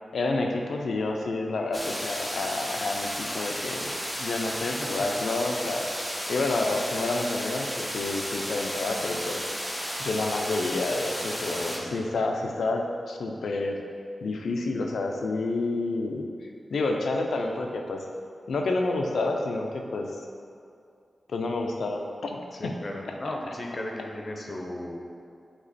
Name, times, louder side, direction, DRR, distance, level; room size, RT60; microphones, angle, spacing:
voice 1, 0.1-3.9 4.2-5.9 6.3-9.5 10.0-13.8 14.2-16.3 16.7-18.0 18.5-20.1 21.3-22.3 23.2-23.3, left 2 dB, 85° left, 2 dB, 0.6 m, -29 dB
sound 1, 1.7-11.8, equal, ahead, 0.6 m, -33 dB
voice 2, 11.6-12.0 22.5-25.0, left 1 dB, 35° left, 0 dB, 0.7 m, -36 dB
8.0 x 3.0 x 4.2 m, 2.4 s
wide cardioid pair, 165°, 0 cm